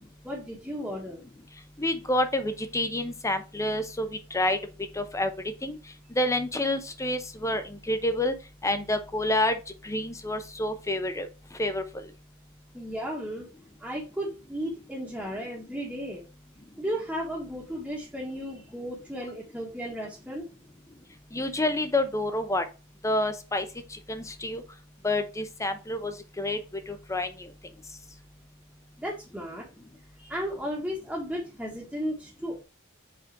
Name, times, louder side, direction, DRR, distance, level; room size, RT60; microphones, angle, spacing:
voice 1, 0.2-1.2 12.7-13.5 13.8-16.2 16.8-20.4 29.0-29.7 30.2-32.6, equal, 5° right, -4 dB, 1.3 m, -34 dB
voice 2, 1.8-4.6 5.0-5.3 5.6-5.8 6.2-8.3 8.6-9.6 9.8-11.3 11.6-12.0 21.3-22.6 23.0-23.7 24.1-24.6 25.0-26.6 26.9-27.3, left 1 dB, 15° left, 9 dB, 0.7 m, -28 dB
5.0 x 4.2 x 4.7 m, 0.31 s
head